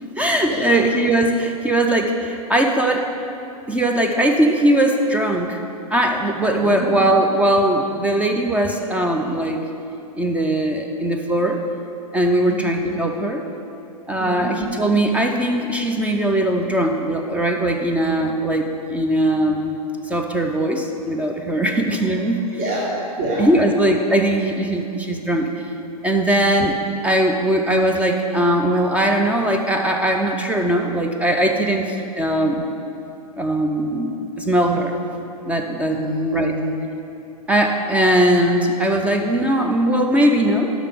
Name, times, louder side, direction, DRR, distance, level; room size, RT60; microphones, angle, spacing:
voice 1, 0.2-3.1 3.7-5.6 5.9-9.6 10.2-11.6 12.1-13.4 14.1-19.8 20.0-22.4 23.4-25.5 26.0-26.8 27.0-32.7 33.4-35.0 35.5-36.0 36.3-36.5 37.5-40.7, right 1 dB, 5° right, 3 dB, 0.4 m, -20 dB
voice 2, 6.5-7.0 12.5-12.6 14.2-14.5 22.6-23.5 35.9-36.7, equal, 55° right, -6 dB, 1.7 m, -26 dB
5.9 x 5.7 x 6.8 m, 2.7 s
hypercardioid pair, 115°, 20 cm